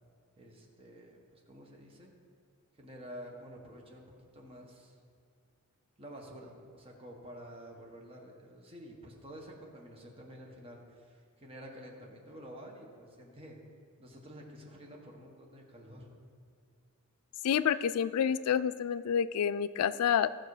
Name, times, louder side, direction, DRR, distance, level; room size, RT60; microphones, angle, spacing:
voice 1, 0.4-2.1 2.7-5.0 6.0-13.6 14.0-16.2, equal, 25° right, 0 dB, 1.4 m, -50 dB
voice 2, 17.4-20.3, left 8 dB, 80° left, 15 dB, 0.3 m, -28 dB
14.5 x 6.0 x 4.9 m, 2.2 s
head